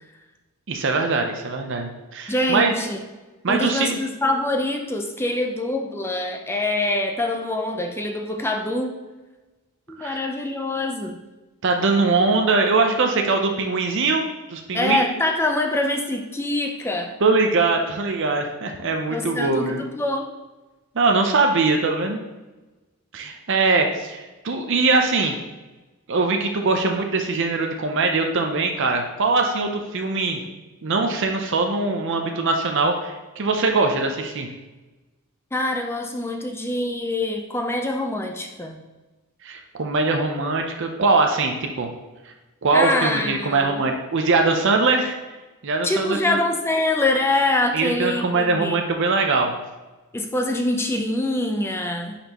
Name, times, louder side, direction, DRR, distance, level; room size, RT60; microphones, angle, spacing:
voice 1, 0.7-2.7 3.4-4.0 10.0-10.2 11.6-15.1 17.2-19.8 20.9-22.2 23.1-25.4 26.1-30.4 30.8-34.5 39.4-41.9 42.6-45.2 45.6-46.4 47.7-49.5, right 3 dB, 55° right, 4 dB, 0.6 m, -22 dB
voice 2, 2.3-3.0 3.5-9.0 9.9-11.2 14.7-17.1 19.1-20.3 35.5-38.8 42.7-43.8 45.8-48.8 50.1-52.2, left 2 dB, 10° left, 3 dB, 0.5 m, -24 dB
10.5 x 4.3 x 3.0 m, 1.2 s
head